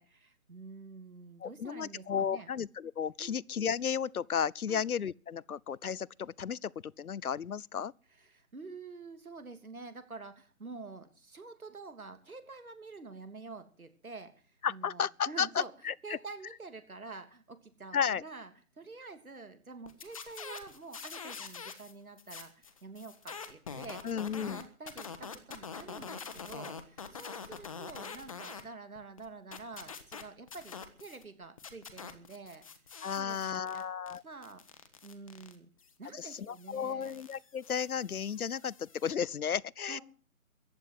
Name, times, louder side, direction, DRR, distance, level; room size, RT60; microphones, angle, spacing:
voice 1, 0.0-2.5 3.2-3.4 4.7-4.9 8.2-14.3 14.7-15.7 16.0-18.5 18.8-24.0 24.4-32.6 33.2-33.8 34.2-34.6 35.0-35.7 36.0-37.1 39.9-40.0, right 3 dB, 75° right, 3.1 m, -47 dB
voice 2, 1.4-7.9 14.6-16.2 17.9-18.2 24.0-24.6 33.0-34.2 36.1-40.0, left 7 dB, 85° left, 0.7 m, -34 dB
sound 1, 19.9-21.9 22.2-28.6 29.0-31.2 31.6-39.1, left 6 dB, 25° left, 1.2 m, -45 dB
15.0 x 10.5 x 7.8 m
figure-of-eight pair, 155°, 43 cm